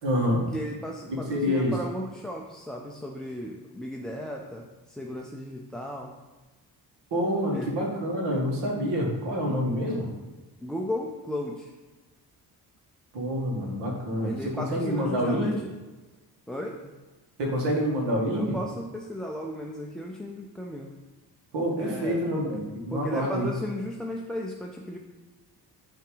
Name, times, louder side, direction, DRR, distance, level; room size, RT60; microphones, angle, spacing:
voice 1, 0.0-0.5 1.1-1.7 7.1-10.1 13.1-15.5 17.4-18.6 21.5-23.5, equal, 90° right, -1 dB, 2.0 m, -27 dB
voice 2, 0.5-6.1 7.5-7.8 9.5-9.6 10.6-11.7 14.2-15.7 16.5-16.9 18.3-20.9 21.8-22.5 22.9-25.0, equal, ahead, 0 dB, 0.3 m, -35 dB
8.8 x 3.5 x 4.9 m, 1.2 s
wide cardioid pair, 150°, 40 cm